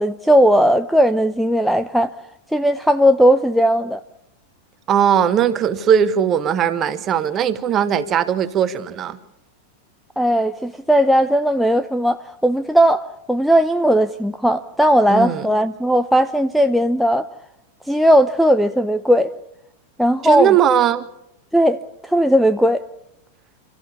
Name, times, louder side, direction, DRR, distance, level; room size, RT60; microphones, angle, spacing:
voice 1, 0.0-2.1 2.5-4.0 10.2-17.2 17.9-19.3 20.0-20.6 21.5-22.8, equal, ahead, 0.7 m, -17 dB
voice 2, 4.9-9.2 15.1-15.5 20.2-21.0, right 8 dB, 30° right, 1.3 m, -18 dB
29.0 x 14.5 x 7.2 m
figure-of-eight pair, 90°, 0 cm